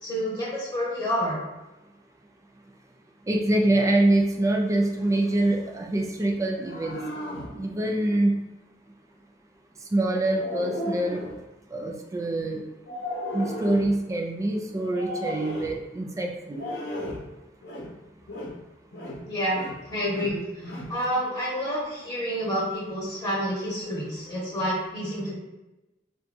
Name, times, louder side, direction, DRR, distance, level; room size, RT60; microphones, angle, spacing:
voice 1, 0.0-1.4 19.3-25.3, equal, 20° left, -7 dB, 1.1 m, -29 dB
voice 2, 3.3-7.0 7.5-8.3 9.9-11.2 11.7-12.6 13.3-16.6, right 1 dB, 15° right, 1 dB, 0.3 m, -25 dB
sound 1, 6.4-7.6 10.0-11.4 12.9-14.0 14.9-15.8 16.5-17.3 17.6-18.0 18.3-18.6 18.9-19.8 20.1-21.0, left 1 dB, 60° left, 0.7 m, -35 dB
4.1 x 2.2 x 2.6 m, 1.0 s
head